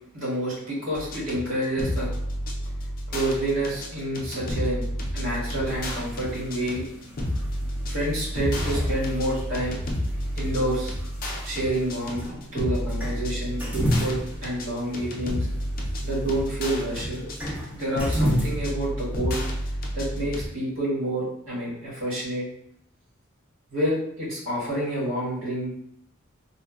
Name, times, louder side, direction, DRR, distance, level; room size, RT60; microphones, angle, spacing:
voice 1, 0.1-2.1 3.1-4.8 5.1-7.2 7.8-9.8 10.3-10.9 11.4-12.2 12.5-15.5 16.0-17.3 17.7-19.4 19.9-22.4 23.7-25.8, right 1 dB, 75° right, -7 dB, 1.4 m, -28 dB
sound 1, 0.9-20.5, equal, 45° left, 0.4 m, -31 dB
sound 2, 5.7-18.7, equal, 10° right, 0.5 m, -34 dB
2.7 x 2.3 x 2.3 m, 0.74 s
head